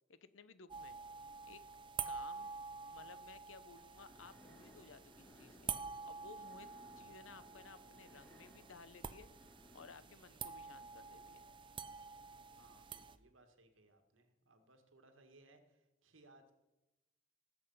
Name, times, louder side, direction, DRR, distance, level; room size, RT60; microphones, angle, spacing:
voice 1, 0.1-1.0 1.5-1.6 2.1-2.5 2.9-5.7 6.1-6.7 7.0-9.3 9.7-11.5, left 5 dB, 80° left, 14 dB, 0.8 m, -57 dB
sound 1, 0.7-13.2, right 6 dB, 25° right, 0.5 m, -48 dB
sound 2, 3.8-11.8, left 1 dB, 10° left, 1.9 m, -64 dB
voice 2, 12.5-16.5, right 2 dB, 85° right, 6 dB, 1.9 m, -66 dB
19.0 x 7.9 x 5.5 m, 0.99 s
head